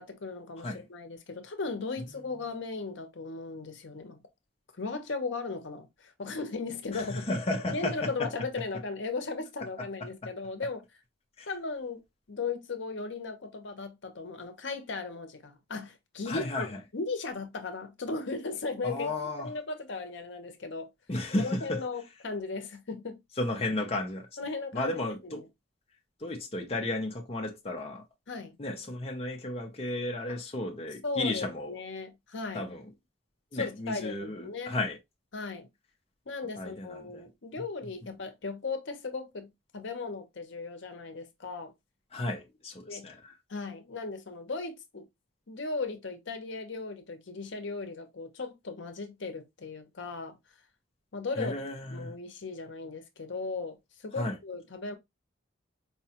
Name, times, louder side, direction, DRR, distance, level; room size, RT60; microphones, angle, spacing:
voice 1, 0.0-4.2 4.8-7.3 7.7-10.8 11.5-12.0 12.3-19.1 19.4-20.9 21.4-23.2 24.4-25.5 28.3-28.5 30.3-30.4 31.0-32.7 33.5-34.7 35.3-35.7 36.3-41.7 42.9-43.1 43.5-45.1 45.5-50.4 51.1-51.6 51.9-54.9, left 3 dB, 65° left, 0.7 m, -37 dB
voice 2, 6.9-8.3 9.8-9.9 10.2-10.3 11.4-11.5 16.3-16.8 18.8-19.5 21.1-21.8 23.4-24.3 24.7-25.4 26.2-28.0 28.6-31.7 32.5-32.9 33.5-35.0 36.6-37.3 42.1-43.4 51.4-52.1 54.2-54.4, left 2 dB, 30° left, 0.5 m, -33 dB
4.7 x 2.2 x 2.8 m
head